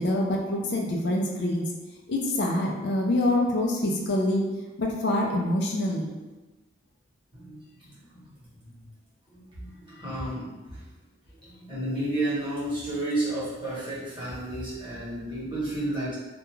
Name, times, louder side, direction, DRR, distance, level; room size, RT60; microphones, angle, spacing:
voice 1, 0.0-1.7 2.1-4.5 4.8-6.1, left 1 dB, 55° left, 0 dB, 0.4 m, -25 dB
voice 2, 7.3-8.9 9.3-10.9 11.3-16.1, right 1 dB, 25° right, -9 dB, 0.9 m, -32 dB
2.3 x 2.2 x 3.0 m, 1.2 s
head